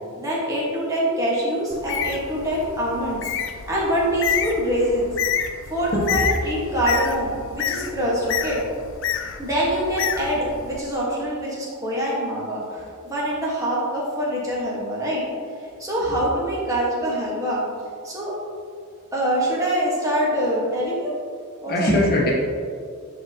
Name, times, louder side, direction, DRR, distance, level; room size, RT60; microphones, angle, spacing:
voice 1, 0.2-3.2 3.7-5.1 5.7-8.6 9.4-15.2 15.8-17.6 18.0-18.3 19.1-21.1 21.6-21.7, equal, 15° right, -6 dB, 1.3 m, -24 dB
Bird, 1.7-10.8, left 8 dB, 60° left, 0.4 m, -29 dB
voice 2, 5.9-6.5 21.7-22.3, left 1 dB, 45° left, -2 dB, 1.2 m, -21 dB
10.5 x 4.0 x 2.8 m, 2.1 s
head